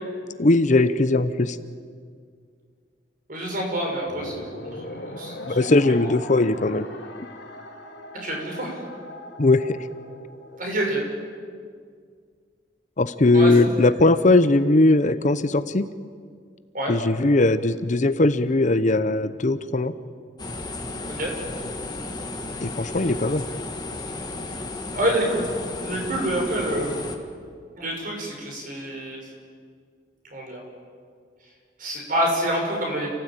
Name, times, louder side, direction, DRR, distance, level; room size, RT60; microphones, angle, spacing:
voice 1, 0.4-1.6 5.5-6.9 9.4-9.8 13.0-15.9 16.9-19.9 22.6-23.4, left 2 dB, 45° left, 12 dB, 0.8 m, -19 dB
voice 2, 3.3-5.6 8.1-8.8 10.6-11.0 13.3-13.5 14.1-14.2 16.7-16.9 21.2-21.3 24.9-25.5 25.8-27.0 27.7-29.2 30.3-30.6 31.8-33.1, right 1 dB, 50° right, 1 dB, 6.6 m, -27 dB
sound 1, 4.1-10.6, left 1 dB, 85° left, 2.8 m, -39 dB
sound 2, 20.4-27.2, left 2 dB, 25° left, 2.0 m, -34 dB
29.5 x 16.5 x 9.0 m, 2.1 s
head